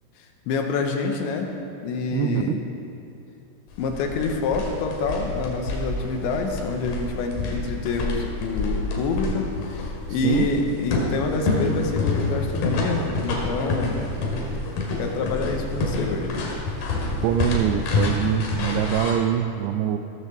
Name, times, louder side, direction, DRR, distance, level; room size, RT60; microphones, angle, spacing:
voice 1, 0.5-1.5 1.8-2.6 3.8-14.0 15.0-16.4, left 4 dB, 80° left, 3 dB, 3.2 m, -27 dB
voice 2, 2.1-2.6 10.1-10.5 17.2-20.0, right 10 dB, 90° right, 7 dB, 2.4 m, -24 dB
sound 1, 3.7-19.1, left 2 dB, 60° left, 3.3 m, -28 dB
17.5 x 6.6 x 6.8 m, 2.8 s
omnidirectional pair, 5.4 m